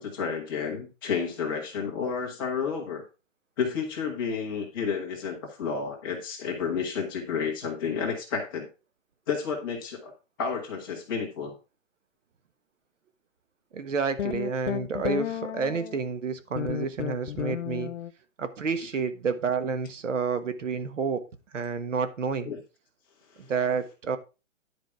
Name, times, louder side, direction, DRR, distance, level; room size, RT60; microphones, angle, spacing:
voice 1, 0.0-3.0 3.6-8.7 9.3-10.1 10.4-11.5 22.4-22.6, left 6 dB, 15° left, -1 dB, 1.5 m, -31 dB
voice 2, 13.7-17.9 18.4-21.2 21.5-22.5 23.4-24.2, right 5 dB, 70° right, 11 dB, 1.4 m, -29 dB
sound 1, 14.2-16.0 16.6-18.1, left 10 dB, 65° left, 0.5 m, -32 dB
10.5 x 5.1 x 4.7 m, 0.30 s
hypercardioid pair, 175°, 39 cm